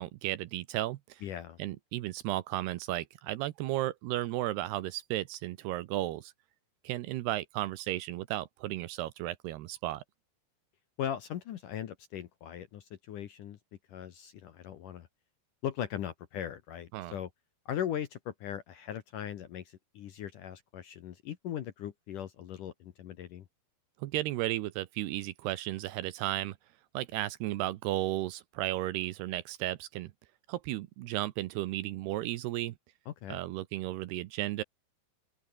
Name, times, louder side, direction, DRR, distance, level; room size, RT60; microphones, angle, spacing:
voice 1, 0.0-1.2 1.6-6.3 6.8-10.0 16.9-17.1 24.0-26.6 26.9-30.1 30.5-32.7 33.3-34.6, right 15 dB, 75° right, 2.7 m, -34 dB
voice 2, 1.2-1.6 11.0-13.6 13.9-15.1 15.6-17.3 17.7-23.5 33.1-33.4, left 10 dB, 65° left, 2.3 m, -39 dB
open air
omnidirectional pair, 5.2 m